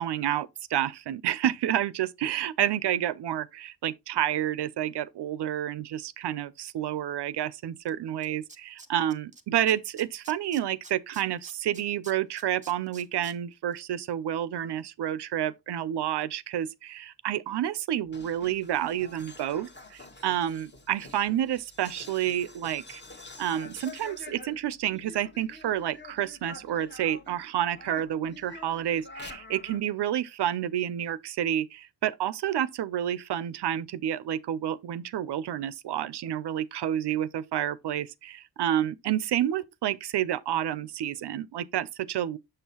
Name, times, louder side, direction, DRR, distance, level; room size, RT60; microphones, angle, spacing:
voice 1, 0.0-23.0 23.4-42.4, right 11 dB, 65° right, 0.5 m, -29 dB
Tools, 7.9-8.0 8.2-9.4 9.7-13.3 13.7-13.8, right 3 dB, 15° right, 0.9 m, -48 dB
sound 1, 18.1-27.4 27.7-29.8, left 2 dB, 25° left, 1.0 m, -47 dB
6.9 x 5.5 x 2.9 m
cardioid pair, 90°, 44 cm